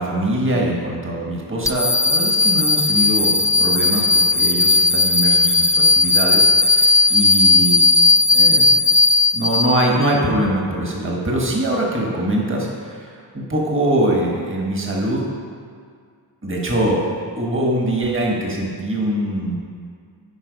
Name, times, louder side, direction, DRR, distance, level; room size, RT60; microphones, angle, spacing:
voice 1, 0.0-7.8 8.3-8.7 9.3-15.3 16.4-17.1 17.3-19.6, right 1 dB, 25° right, -2 dB, 1.5 m, -22 dB
sound 1, 1.6-10.1, left 3 dB, 10° left, 0.4 m, -16 dB
11.0 x 4.5 x 5.3 m, 2.1 s
wide cardioid pair, 110°, 45 cm